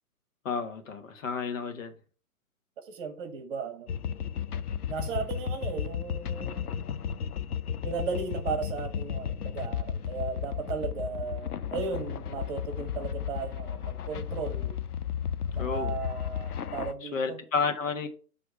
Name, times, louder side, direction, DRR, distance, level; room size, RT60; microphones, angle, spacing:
voice 1, 0.4-1.9 15.6-15.9 17.0-18.1, left 5 dB, 60° left, 1.5 m, -31 dB
voice 2, 2.8-3.9 4.9-6.7 7.8-14.8 15.5-17.4, right 5 dB, 35° right, 1.5 m, -36 dB
sound 1, 3.9-16.9, left 8 dB, 80° left, 0.7 m, -34 dB
6.2 x 3.4 x 5.9 m
figure-of-eight pair, 130°, 44 cm